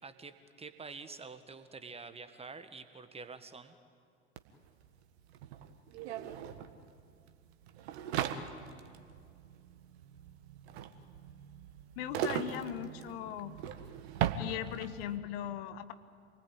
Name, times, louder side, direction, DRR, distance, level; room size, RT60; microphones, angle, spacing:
voice 1, 0.0-3.8, right 4 dB, 15° right, 9 dB, 1.6 m, -47 dB
sound 1, 4.4-4.5 4.6-15.1, right 9 dB, 60° right, 1.6 m, -39 dB
voice 2, 12.0-13.6 14.4-15.9, left 11 dB, 55° left, 12 dB, 1.3 m, -39 dB
28.0 x 19.5 x 9.0 m, 2.3 s
figure-of-eight pair, 80°, 36 cm